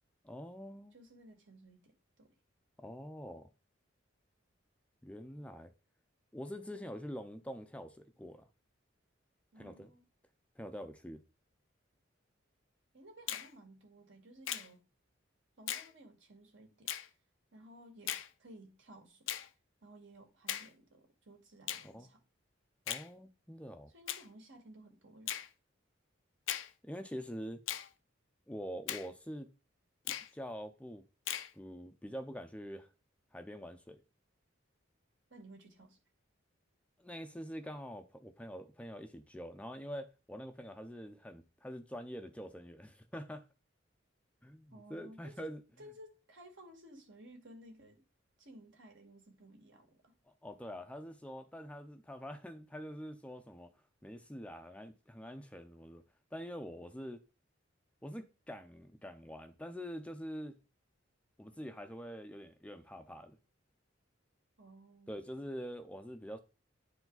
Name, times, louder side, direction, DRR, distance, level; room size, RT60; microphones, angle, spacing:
voice 1, 0.2-0.9 2.8-3.5 5.0-5.7 6.3-8.5 9.6-9.9 10.6-11.2 21.8-22.1 22.9-23.9 26.8-27.6 28.5-29.5 30.1-31.0 31.5-32.9 33.3-34.0 37.0-43.4 44.4-45.6 50.4-53.7 54.0-56.0 56.3-57.2 58.0-60.6 61.4-63.4 65.1-66.4, equal, 5° left, 0.5 m, -45 dB
voice 2, 0.9-2.3 9.5-10.0 12.9-14.8 15.6-16.9 17.5-19.3 19.8-22.2 23.9-25.4 35.3-36.0 44.7-48.0 48.4-50.1 64.6-65.2, right 1 dB, 70° right, 2.2 m, -56 dB
Finger snapping, 13.3-13.5 14.5-14.7 15.7-15.9 16.9-17.1 18.1-18.3 19.3-19.5 20.5-20.7 21.7-21.9 22.9-23.1 24.1-24.3 25.3-25.5 26.5-26.7 27.7-27.9 28.9-29.1 30.1-30.3 31.3-31.5, left 11 dB, 75° left, 0.6 m, -38 dB
9.7 x 4.7 x 4.0 m
head